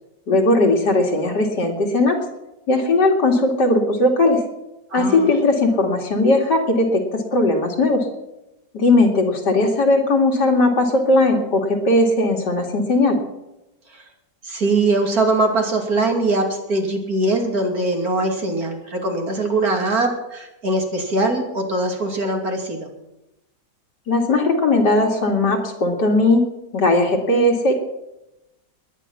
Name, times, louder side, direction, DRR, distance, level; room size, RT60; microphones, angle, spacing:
voice 1, 0.3-2.2 2.7-4.4 4.9-8.1 8.7-13.2 24.1-26.5 26.7-27.7, left 2 dB, 80° left, 2 dB, 3.0 m, -18 dB
voice 2, 4.9-5.3 13.9-14.0 14.4-22.9, right 2 dB, 60° right, 2 dB, 3.2 m, -21 dB
20.5 x 10.0 x 5.8 m, 0.93 s
omnidirectional pair, 1.8 m